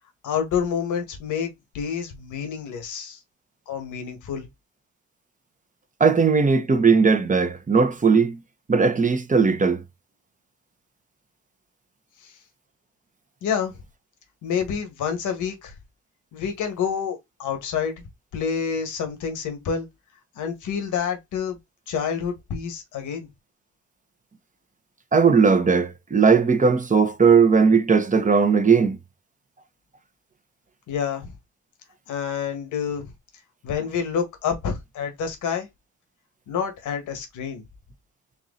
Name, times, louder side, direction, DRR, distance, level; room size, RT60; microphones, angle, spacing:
voice 1, 0.2-3.2 3.7-4.5 12.2-12.3 13.4-13.7 14.4-15.7 16.3-17.9 18.3-19.9 20.4-21.6 21.9-23.3 30.9-31.3 32.1-33.1 33.6-35.7 36.5-37.6, left 7 dB, 80° left, 1.8 m, -28 dB
voice 2, 6.0-8.4 8.7-9.8 25.1-29.0, right 5 dB, 25° right, 1.0 m, -18 dB
4.8 x 2.7 x 3.9 m
cardioid pair, 90°, 30 cm